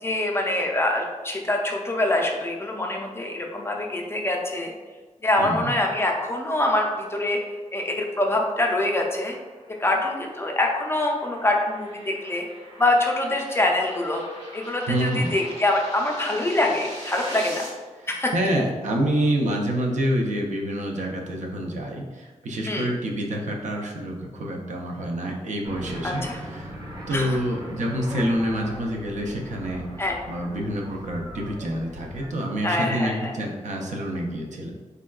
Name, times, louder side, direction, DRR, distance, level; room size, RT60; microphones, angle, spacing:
voice 1, 0.0-4.7 5.2-7.4 7.7-9.3 9.8-12.5 12.8-14.2 14.5-17.7 18.1-18.3 22.7-22.9 26.0-26.4 27.1-27.4 30.0-30.2 32.6-33.3, left 1 dB, 20° left, 0 dB, 0.4 m, -24 dB
voice 2, 5.4-5.7 14.9-15.3 18.0-26.7 27.1-29.9 30.3-34.7, right 1 dB, 80° right, 1 dB, 0.5 m, -27 dB
sound 1, 9.2-17.7, right 1 dB, 60° right, 1.5 m, -43 dB
sound 2, 25.6-32.3, equal, 35° right, 0.6 m, -39 dB
3.4 x 2.2 x 2.2 m, 1.3 s
wide cardioid pair, 95°, 12 cm